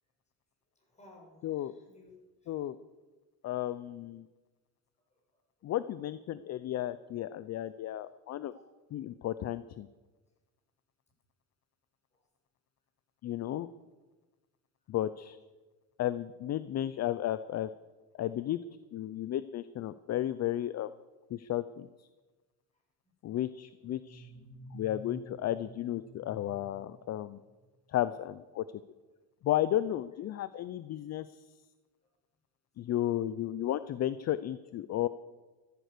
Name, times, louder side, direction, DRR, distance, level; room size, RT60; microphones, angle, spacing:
voice 1, 0.7-2.1 2.4-2.6 5.0-5.7 8.4-8.6 12.1-12.2 22.7-22.8 23.2-23.4 32.0-32.1, left 2 dB, 20° left, -2 dB, 7.4 m, -60 dB
voice 2, 1.4-1.7 2.5-2.8 3.4-4.3 5.6-8.5 8.9-9.9 13.2-13.7 14.9-15.4 16.0-17.7 18.2-18.6 18.9-20.9 21.3-22.1 23.2-24.3 24.7-27.4 27.9-28.7 29.4-31.4 32.8-35.1, left 12 dB, 45° left, 15 dB, 0.6 m, -33 dB
sound 1, 24.0-27.7, equal, 85° left, 7.3 m, -51 dB
15.0 x 14.0 x 6.7 m, 1.2 s
cardioid pair, 125°, 38 cm